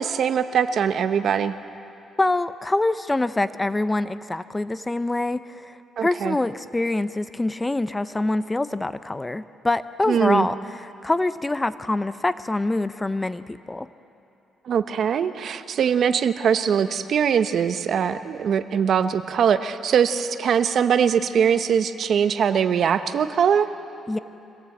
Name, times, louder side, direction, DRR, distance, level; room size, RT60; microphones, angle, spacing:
voice 1, 0.0-1.5 6.0-6.4 10.1-10.5 14.6-23.7, right 7 dB, 60° right, 10 dB, 0.9 m, -22 dB
voice 2, 2.2-10.6 11.0-13.9 24.1-24.2, left 2 dB, 15° left, 13 dB, 0.7 m, -25 dB
25.5 x 18.0 x 7.9 m, 2.7 s
cardioid pair, 90°, 0 cm